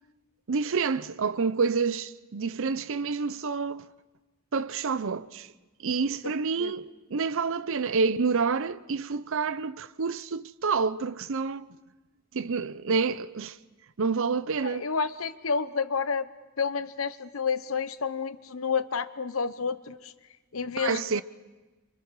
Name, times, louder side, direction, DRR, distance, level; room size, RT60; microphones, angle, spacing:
voice 1, 0.5-3.9 4.5-5.5 5.8-11.7 12.3-13.6 14.0-14.9 20.8-21.2, right 5 dB, 65° right, 0.6 m, -28 dB
voice 2, 14.6-16.3 16.6-20.1 20.5-21.2, left 5 dB, 70° left, 0.9 m, -30 dB
29.5 x 25.5 x 4.8 m
head